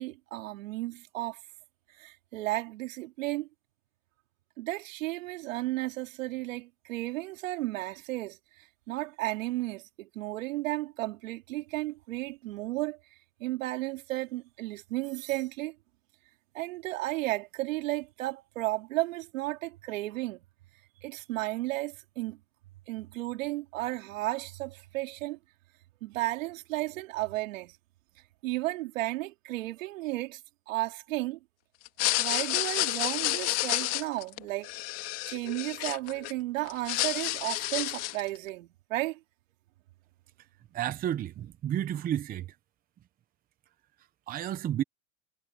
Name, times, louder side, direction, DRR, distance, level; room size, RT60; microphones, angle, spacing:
voice 1, 0.0-1.4 2.0-3.5 4.6-13.0 13.4-15.7 16.5-20.4 21.0-22.4 22.9-25.4 26.0-27.8 28.4-30.4 30.7-31.4 32.2-34.7 35.2-39.2, right 18 dB, 75° right, 3.3 m, -33 dB
sound 1, 31.9-36.3 36.7-38.3, left 17 dB, 40° left, 2.0 m, -30 dB
voice 2, 40.7-42.5 44.3-44.8, right 11 dB, 20° right, 0.9 m, -31 dB
supercardioid pair, 145°, 39 cm